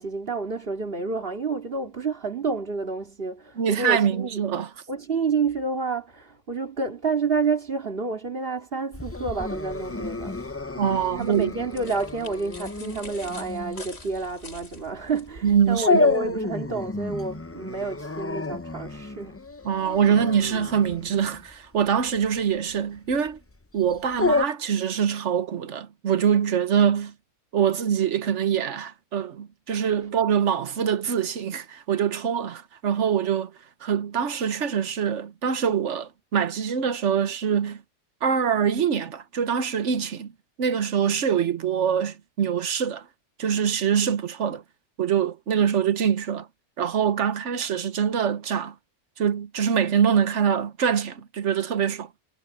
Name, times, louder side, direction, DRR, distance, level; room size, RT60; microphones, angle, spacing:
voice 1, 0.0-4.4 4.9-10.4 11.2-19.4, right 4 dB, 50° right, 2.6 m, -29 dB
voice 2, 3.6-4.7 10.8-11.5 15.4-16.4 19.6-23.4 23.7-27.1 27.5-33.5 33.8-37.8 38.2-40.3 40.6-43.1 43.4-44.6 45.0-46.5 46.8-48.7 49.2-52.1, right 8 dB, 80° right, 1.4 m, -24 dB
Dog, 8.9-24.5, left 3 dB, 20° left, 0.5 m, -30 dB
sound 1, 11.2-15.3, left 3 dB, 85° left, 3.6 m, -45 dB
omnidirectional pair, 1.2 m